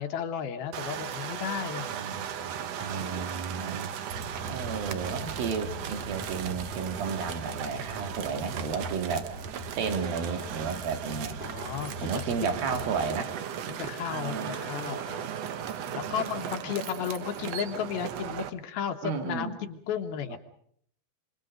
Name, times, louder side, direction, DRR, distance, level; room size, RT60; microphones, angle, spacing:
voice 1, 0.0-1.9 2.9-3.4 11.4-12.5 13.7-15.4 15.9-20.4, left 8 dB, 75° left, 5 dB, 3.2 m, -34 dB
sound 1, 0.7-18.5, right 9 dB, 85° right, 1.4 m, -37 dB
voice 2, 1.9-4.0 4.5-9.3 9.8-11.4 12.0-13.3 14.1-14.6 15.7-16.3 19.0-19.6, right 5 dB, 70° right, 5 dB, 3.6 m, -33 dB
sound 2, 4.1-13.0, right 3 dB, 50° right, 7.7 m, -41 dB
26.5 x 26.5 x 5.2 m, 0.65 s
omnidirectional pair, 4.6 m